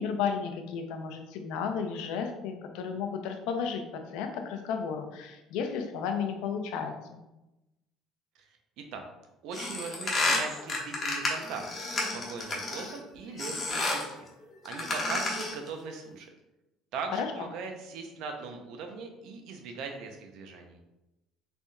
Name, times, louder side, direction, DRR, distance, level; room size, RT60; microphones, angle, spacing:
voice 1, 0.0-7.2 17.1-17.3, left 6 dB, 80° left, 5 dB, 0.5 m, -33 dB
voice 2, 9.4-11.6 12.1-14.3 14.6-16.3 16.9-20.8, right 4 dB, 70° right, 4 dB, 0.7 m, -40 dB
sound 1, 9.5-13.0 13.4-14.1 14.6-15.6, left 2 dB, 30° left, 1.1 m, -31 dB
4.0 x 3.4 x 2.4 m, 0.96 s
cardioid pair, 120°, 0 cm